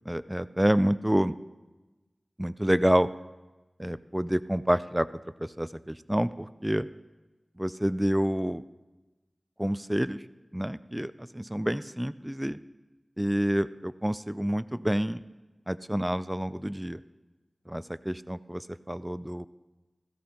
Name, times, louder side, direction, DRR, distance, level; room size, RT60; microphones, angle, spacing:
voice 1, 0.0-1.3 2.4-3.1 3.8-5.1 5.4-6.9 7.6-8.6 9.6-10.2 10.5-12.6 13.2-15.2 15.7-17.0 17.7-19.5, equal, 10° right, 15 dB, 0.4 m, -28 dB
16.0 x 15.5 x 2.9 m, 1.1 s
cardioid pair, 40°, 0 cm